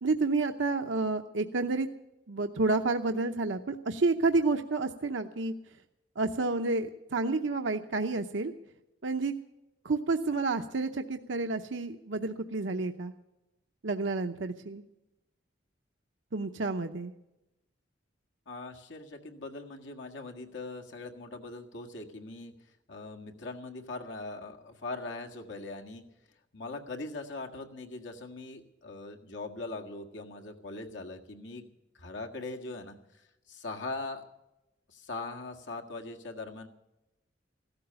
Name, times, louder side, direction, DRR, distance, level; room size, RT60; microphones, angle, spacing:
voice 1, 0.0-1.9 2.3-5.5 6.2-8.5 9.0-9.3 9.8-13.1 13.8-14.8 16.3-17.1, right 3 dB, 90° right, 6 dB, 0.8 m, -30 dB
voice 2, 18.5-22.5 22.9-26.0 26.5-31.7 31.9-34.3 34.9-36.7, left 3 dB, 85° left, 2 dB, 1.7 m, -41 dB
15.5 x 13.0 x 6.9 m, 0.94 s
head